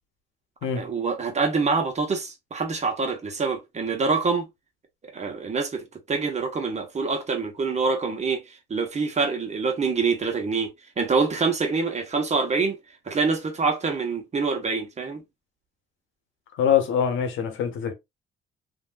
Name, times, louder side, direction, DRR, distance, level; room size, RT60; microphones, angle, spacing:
voice 1, 0.8-4.5 5.0-10.7 11.0-12.8 13.0-15.2, right 4 dB, 35° right, 1.1 m, -25 dB
voice 2, 16.6-17.9, left 8 dB, 75° left, 0.8 m, -23 dB
3.2 x 2.7 x 2.4 m
cardioid pair, 90°, 20 cm